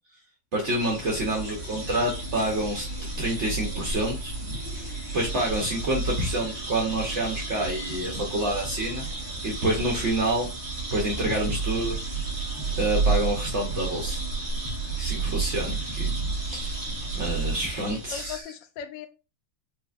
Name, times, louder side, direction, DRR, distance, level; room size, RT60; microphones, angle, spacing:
voice 1, 0.5-2.8 3.2-4.3 4.7-9.1 9.4-10.5 10.9-12.0 12.8-14.2 15.0-16.1 16.4-16.8 17.1-18.4, right 1 dB, 75° right, -1 dB, 0.6 m, -28 dB
sound 1, 0.6-18.4, right 3 dB, 40° right, 1.4 m, -31 dB
voice 2, 17.7-19.1, left 8 dB, 75° left, 8 dB, 1.1 m, -39 dB
4.5 x 2.4 x 2.4 m, 0.30 s
omnidirectional pair, 2.3 m